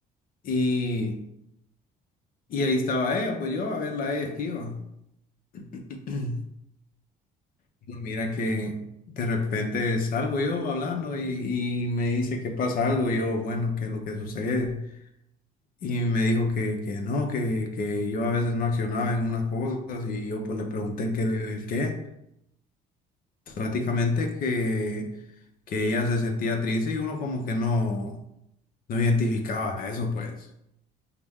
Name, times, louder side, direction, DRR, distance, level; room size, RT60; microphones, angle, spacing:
voice 1, 0.4-1.2 2.5-4.8 5.5-6.4 7.9-8.8 9.1-14.8 15.8-22.0 23.5-25.2 25.7-28.2 28.9-30.5, left 2 dB, 55° left, 0.7 m, -27 dB
5.8 x 2.1 x 3.5 m
cardioid pair, 110°, 17 cm